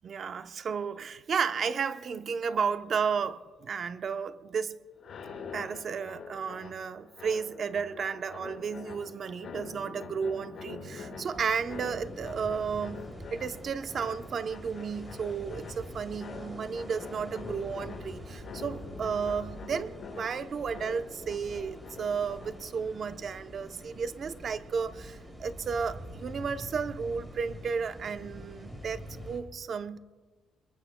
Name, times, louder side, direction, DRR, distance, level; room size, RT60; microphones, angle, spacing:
voice 1, 0.0-4.8 5.5-30.0, right 6 dB, 40° right, 0.7 m, -33 dB
sound 1, 5.0-22.8, left 4 dB, 50° left, 4.5 m, -45 dB
sound 2, 11.3-29.4, equal, 10° right, 3.8 m, -45 dB
26.5 x 23.0 x 2.2 m
cardioid pair, 145°, 0 cm